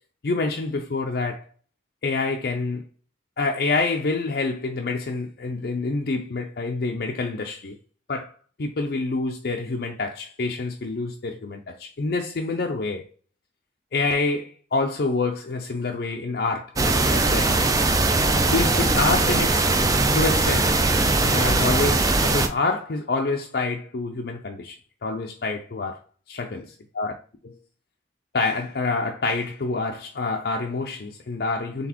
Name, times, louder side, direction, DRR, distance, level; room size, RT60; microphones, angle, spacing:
voice 1, 0.2-1.5 2.0-2.9 3.4-7.8 8.1-8.3 8.6-13.0 13.9-17.7 18.5-19.8 20.1-20.8 21.2-24.8 25.0-26.0 26.3-27.1 27.4-27.5 28.3-31.9, left 3 dB, 55° left, 0.5 m, -27 dB
sound 1, 16.8-22.5, right 2 dB, 20° right, 0.4 m, -20 dB
4.0 x 3.5 x 2.9 m
head